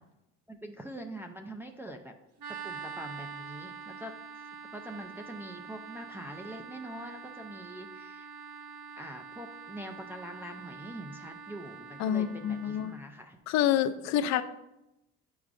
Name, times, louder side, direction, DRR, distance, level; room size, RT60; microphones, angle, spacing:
voice 1, 0.5-2.1 2.5-4.1 4.7-8.3 9.0-13.4, right 1 dB, 10° right, 2 dB, 0.3 m, -44 dB
sound 1, 2.4-13.0, right 6 dB, 75° right, 1.1 m, -45 dB
voice 2, 12.0-12.9 13.5-14.4, left 10 dB, 65° left, 11 dB, 0.5 m, -27 dB
8.2 x 4.7 x 2.5 m, 0.89 s
cardioid pair, 130°, 30 cm